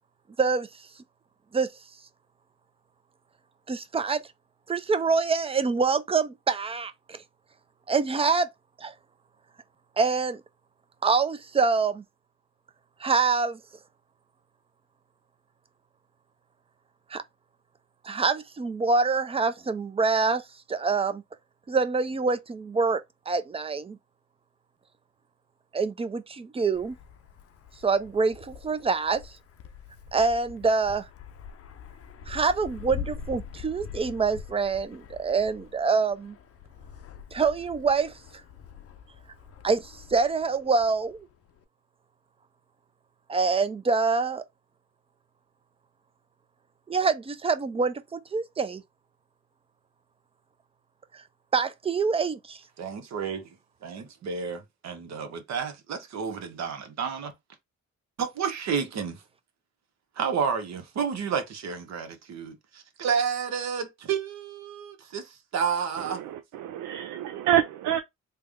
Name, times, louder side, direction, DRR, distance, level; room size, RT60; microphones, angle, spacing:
voice 1, 3.7-4.2 4.7-7.2 7.9-8.5 8.8-8.9 10.0-10.4 11.0-12.0 13.0-13.6 17.1-17.2 18.0-20.4 20.7-21.2 21.7-24.0 25.7-26.9 27.8-29.3 30.1-31.0 32.3-36.4 37.3-38.1 39.6-41.2 43.3-44.4 46.9-48.8 51.5-52.6, right 4 dB, 20° right, 0.4 m, -25 dB
Wind, 26.7-41.6, left 7 dB, 50° left, 0.6 m, -44 dB
voice 2, 52.8-53.6 53.8-57.3 58.2-59.2 60.2-66.2, right 6 dB, 60° right, 1.0 m, -31 dB
voice 3, 66.0-68.0, right 11 dB, 75° right, 0.5 m, -27 dB
3.4 x 2.1 x 3.5 m
cardioid pair, 90°, 30 cm